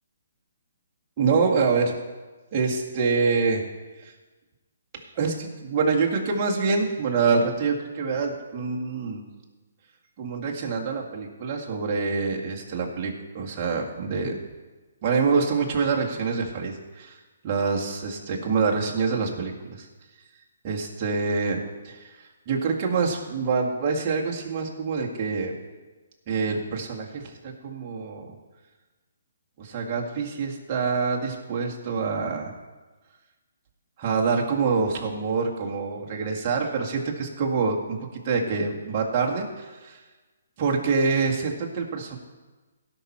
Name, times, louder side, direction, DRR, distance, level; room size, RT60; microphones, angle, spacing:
voice 1, 1.2-1.9 2.5-3.6 4.0-4.1 4.9-9.2 10.2-14.3 15.0-17.2 17.4-19.9 20.6-21.6 21.8-25.5 26.3-28.3 29.6-32.5 34.0-40.0 40.6-42.2, right 4 dB, 35° right, -1 dB, 1.9 m, -26 dB
17.5 x 6.0 x 4.4 m, 1.3 s
figure-of-eight pair, 140°, 0 cm